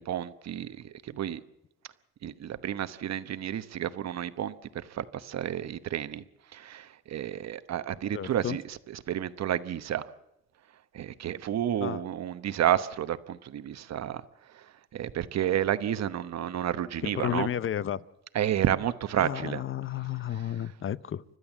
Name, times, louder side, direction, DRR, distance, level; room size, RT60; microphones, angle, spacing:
voice 1, 0.0-1.4 2.2-4.5 4.9-6.2 6.5-8.6 9.1-10.0 10.9-14.2 14.9-17.5 18.3-19.6, right 10 dB, 60° right, 12 dB, 1.0 m, -30 dB
voice 2, 8.1-8.6 11.8-12.0 17.0-18.0 19.2-21.2, left 10 dB, 45° left, 17 dB, 0.7 m, -32 dB
30.0 x 12.5 x 7.3 m, 0.85 s
cardioid pair, 90°, 30 cm